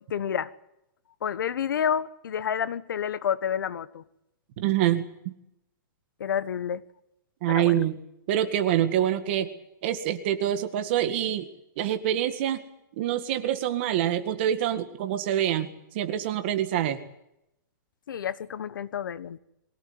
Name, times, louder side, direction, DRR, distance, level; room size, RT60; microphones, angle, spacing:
voice 1, 0.1-0.5 1.2-4.0 6.2-6.8 7.5-7.7 18.1-19.4, left 8 dB, 85° left, 15 dB, 1.4 m, -29 dB
voice 2, 4.6-5.3 7.4-8.0 8.3-9.5 9.8-11.5 11.8-12.7 13.0-15.7 15.9-17.0, right 11 dB, 35° right, 8 dB, 1.9 m, -26 dB
23.0 x 17.0 x 9.7 m, 0.82 s
hypercardioid pair, 180°, 11 cm